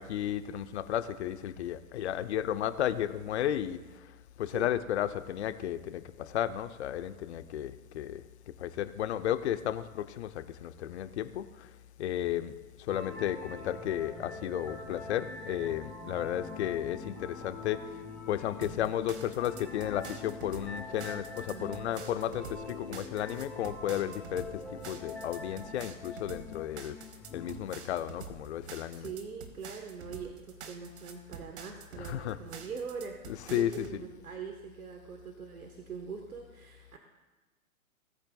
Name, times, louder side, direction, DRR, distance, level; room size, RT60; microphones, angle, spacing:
voice 1, 0.0-4.1 4.4-8.2 8.6-11.7 12.0-17.8 18.3-27.0 27.3-29.1 32.0-32.4 33.2-34.0, left 11 dB, 50° left, 12 dB, 0.8 m, -33 dB
sound 1, 12.9-27.5, left 3 dB, ahead, 3.9 m, -44 dB
sound 2, 18.6-34.0, right 7 dB, 50° right, 1.5 m, -47 dB
voice 2, 21.5-21.8 28.9-33.2 33.5-37.0, right 5 dB, 80° right, 3 dB, 1.4 m, -42 dB
18.5 x 8.7 x 2.3 m, 1.2 s
hypercardioid pair, 125°, 43 cm